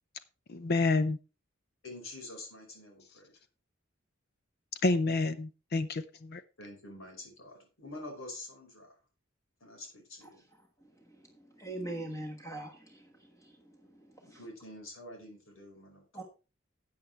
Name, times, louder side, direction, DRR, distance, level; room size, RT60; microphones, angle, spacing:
voice 1, 0.5-1.2 4.8-6.4, left 3 dB, 50° left, 12 dB, 0.6 m, -29 dB
voice 2, 1.8-3.3 6.6-9.0 9.6-10.4 14.2-16.2, left 2 dB, 85° left, 1 dB, 5.2 m, -47 dB
voice 3, 11.6-13.0 14.3-14.4 16.1-16.2, right 1 dB, 15° left, 1 dB, 1.4 m, -39 dB
13.5 x 8.6 x 3.4 m, 0.31 s
head